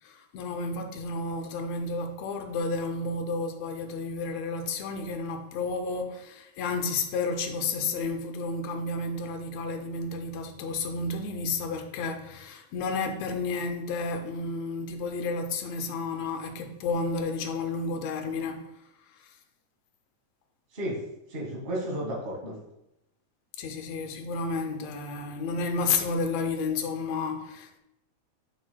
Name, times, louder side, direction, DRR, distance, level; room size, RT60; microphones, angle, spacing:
voice 1, 0.0-18.7 19.2-19.3 23.6-27.8, left 3 dB, 70° left, 1.8 m, -31 dB
voice 2, 21.3-22.5, right 1 dB, 25° right, 1.5 m, -32 dB
7.6 x 6.7 x 2.2 m
omnidirectional pair, 3.4 m